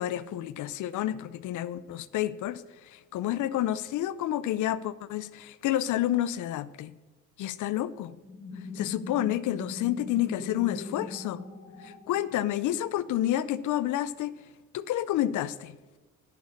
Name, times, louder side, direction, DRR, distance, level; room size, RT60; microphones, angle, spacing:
voice 1, 0.0-6.9 7.4-8.2 8.7-11.4 11.8-14.4 14.7-15.8, left 13 dB, 80° left, 0.6 m, -29 dB
sound 1, 8.2-12.6, left 3 dB, 60° left, 4.3 m, -40 dB
10.0 x 6.5 x 7.0 m
cardioid pair, 90°, 30 cm